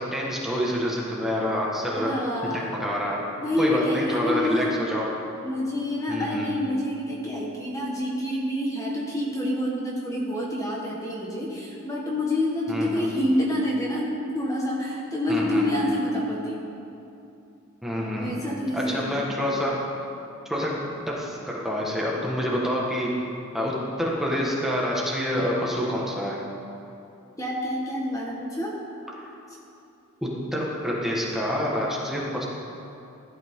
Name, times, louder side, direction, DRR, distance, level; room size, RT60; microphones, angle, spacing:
voice 1, 0.0-2.1 2.4-3.2 3.6-5.1 6.1-6.6 12.7-13.1 15.3-15.7 17.8-18.3 18.7-19.8 20.5-20.7 21.1-23.1 23.5-26.4 29.2-29.3 30.2-32.4, equal, ahead, -4 dB, 1.4 m, -27 dB
voice 2, 1.9-2.8 3.4-4.7 5.4-16.6 18.1-19.2 27.4-28.7, left 1 dB, 15° left, -3 dB, 1.4 m, -27 dB
16.0 x 11.5 x 3.7 m, 2.7 s
head